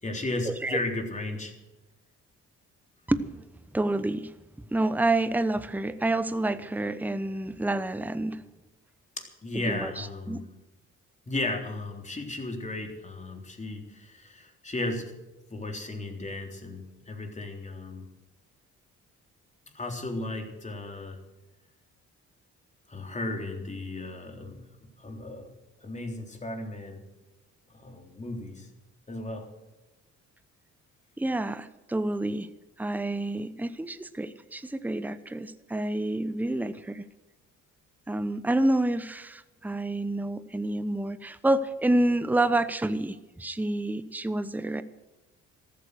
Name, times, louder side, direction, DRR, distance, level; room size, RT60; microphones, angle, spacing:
voice 1, 0.0-1.5 9.2-10.5 11.3-15.1 15.5-18.1 19.7-21.2 22.9-24.7 25.0-25.5 25.8-27.0 27.7-28.7 29.1-29.5, left 2 dB, 25° left, 3.7 m, -35 dB
voice 2, 3.1-3.4 3.7-4.3 4.7-8.4 9.5-10.4 31.2-32.5 32.8-37.0 38.1-44.8, right 2 dB, 5° right, 0.9 m, -28 dB
14.0 x 13.0 x 6.4 m
cardioid pair, 90°, 30 cm